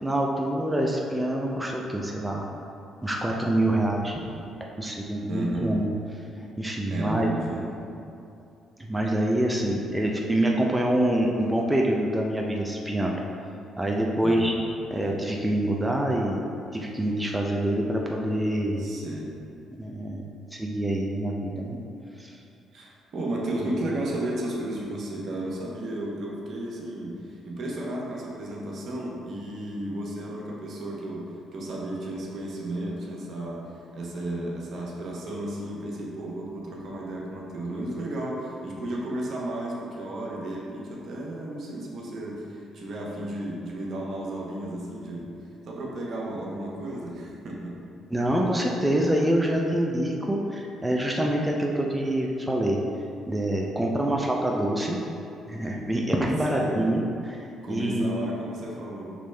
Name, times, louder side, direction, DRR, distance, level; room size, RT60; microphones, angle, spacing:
voice 1, 0.0-2.5 3.0-4.2 4.8-5.9 6.6-7.3 8.8-13.2 13.8-14.5 14.9-16.4 16.7-18.8 19.8-20.2 20.5-21.8 22.2-22.4 48.1-52.8 53.3-55.0 55.5-57.0 57.3-58.1, right 1 dB, 10° right, -1 dB, 0.5 m, -26 dB
voice 2, 5.3-5.8 6.9-7.9 9.7-9.8 14.2-14.6 18.8-19.4 22.7-45.4 45.7-47.8 56.5-56.9 57.6-59.2, right 1 dB, 60° right, -3 dB, 0.9 m, -33 dB
5.2 x 3.1 x 3.3 m, 2.6 s
supercardioid pair, 65°, 0 cm